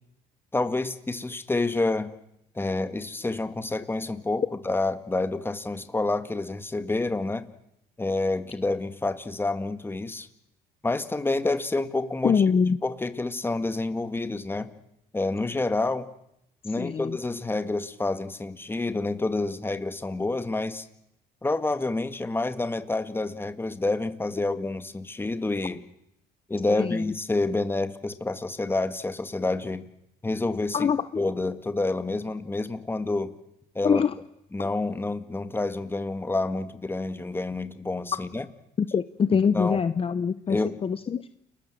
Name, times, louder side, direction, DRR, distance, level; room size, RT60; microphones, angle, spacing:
voice 1, 0.5-2.1 2.6-7.4 8.0-10.3 10.8-12.4 12.8-14.7 15.1-16.1 16.6-20.9 21.4-25.8 26.5-29.9 30.2-30.9 31.2-33.3 33.8-34.0 34.5-38.5 39.5-39.8 40.5-40.8, left 2 dB, 15° left, 10 dB, 2.0 m, -28 dB
voice 2, 12.2-12.8 16.7-17.2 26.7-27.0 30.7-31.2 33.8-34.1 38.8-41.3, left 6 dB, 35° left, 12 dB, 1.0 m, -24 dB
30.0 x 21.0 x 7.6 m, 0.81 s
cardioid pair, 110°, 17 cm